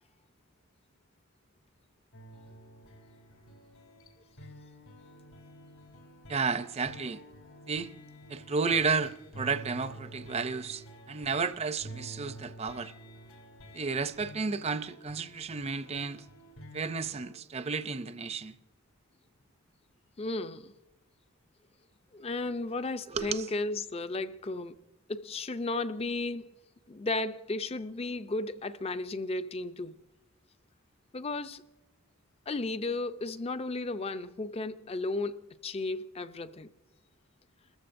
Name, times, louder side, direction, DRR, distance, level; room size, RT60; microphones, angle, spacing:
sound 1, 2.1-17.3, right 1 dB, 90° left, 3.3 m, -50 dB
voice 1, 6.3-7.2 7.7-7.9 8.3-12.9 13.7-16.2 16.7-18.5 23.1-23.5, right 4 dB, 30° right, 0.5 m, -32 dB
voice 2, 20.2-20.7 22.1-24.8 25.1-26.5 26.9-30.0 31.1-31.6 32.5-36.7, left 2 dB, 25° left, 0.4 m, -34 dB
30.0 x 14.5 x 2.6 m
head